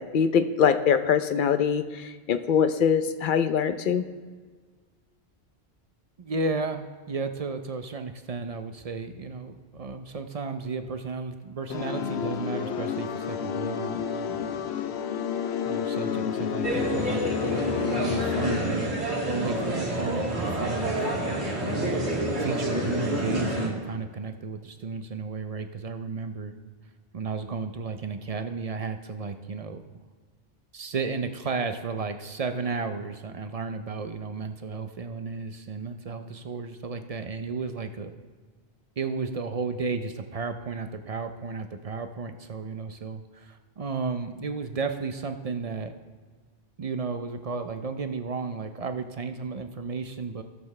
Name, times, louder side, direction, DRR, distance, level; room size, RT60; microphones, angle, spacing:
voice 1, 0.0-4.0, left 7 dB, 55° left, 10 dB, 0.7 m, -23 dB
voice 2, 6.2-14.7 15.6-19.0 19.2-21.6 22.3-26.6 27.1-29.8 30.7-38.1 39.0-45.9 46.8-50.4, right 4 dB, 45° right, 8 dB, 0.5 m, -33 dB
sound 1, 11.7-18.6, left 8 dB, 85° left, 0.9 m, -30 dB
sound 2, 16.6-23.7, right 1 dB, 85° right, 2.5 m, -28 dB
16.5 x 7.0 x 3.2 m, 1.5 s
omnidirectional pair, 1.1 m